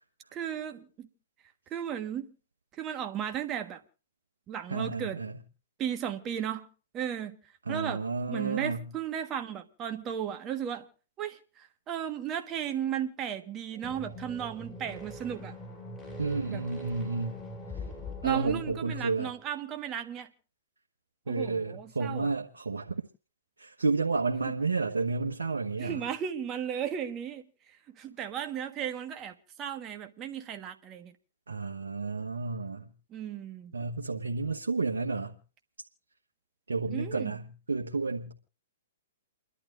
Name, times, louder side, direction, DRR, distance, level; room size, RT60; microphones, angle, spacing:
voice 1, 0.3-1.1 1.7-2.3 2.7-3.8 4.5-5.2 5.8-6.7 6.9-7.4 7.7-10.9 11.2-15.6 16.5-16.6 18.2-20.3 21.3-22.3 24.5-24.6 25.8-31.1 33.1-33.7 36.9-37.3, right 9 dB, 25° right, 1.4 m, -35 dB
voice 2, 4.7-5.4 7.6-8.9 16.2-17.4 18.2-19.3 21.3-23.0 23.6-26.1 31.5-32.9 33.7-35.4 36.7-38.3, right 3 dB, 85° right, 1.3 m, -31 dB
sound 1, 13.7-19.4, left 1 dB, 5° left, 7.9 m, -43 dB
29.5 x 11.5 x 2.6 m
hypercardioid pair, 125°, 0 cm